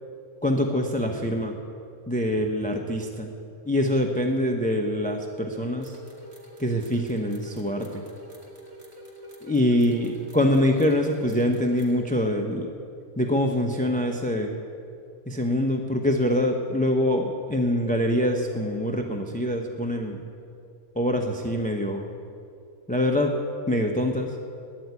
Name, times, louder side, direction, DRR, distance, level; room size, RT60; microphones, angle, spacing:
voice 1, 0.4-1.6 2.1-3.3 3.7-6.0 6.6-8.0 9.4-12.7 13.2-14.6 15.3-20.2 21.0-22.1 22.9-23.4 23.7-24.3, left 1 dB, 5° left, 2 dB, 0.7 m, -24 dB
sound 1, 5.8-11.9, equal, 45° right, 2.2 m, -45 dB
12.5 x 10.0 x 9.6 m, 2.5 s
omnidirectional pair, 1.6 m